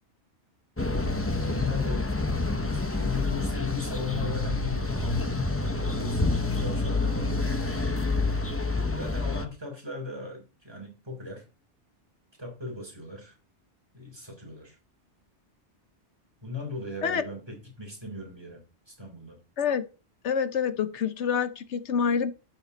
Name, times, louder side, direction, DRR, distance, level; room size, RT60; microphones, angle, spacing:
sound 1, 0.8-9.5, left 3 dB, 15° left, 0.8 m, -28 dB
voice 1, 1.4-5.4 5.9-7.5 8.9-11.5 12.4-13.4 13.9-14.8 16.4-19.4, left 4 dB, 20° right, 3.6 m, -38 dB
voice 2, 20.2-22.3, left 7 dB, 80° left, 1.1 m, -27 dB
11.5 x 7.8 x 4.1 m
omnidirectional pair, 1.2 m